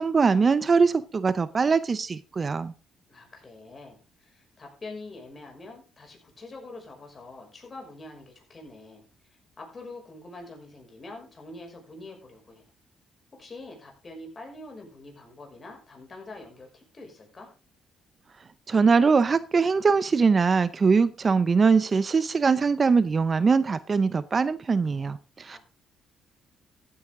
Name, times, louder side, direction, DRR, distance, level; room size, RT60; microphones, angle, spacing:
voice 1, 0.0-2.7 18.7-25.6, right 5 dB, 35° right, 16 dB, 0.6 m, -22 dB
voice 2, 3.1-9.0 9.6-12.6 13.3-17.5 25.5-25.6, left 2 dB, 35° left, 1 dB, 6.2 m, -45 dB
14.5 x 9.6 x 3.7 m, 0.31 s
cardioid pair, 90°, 0 cm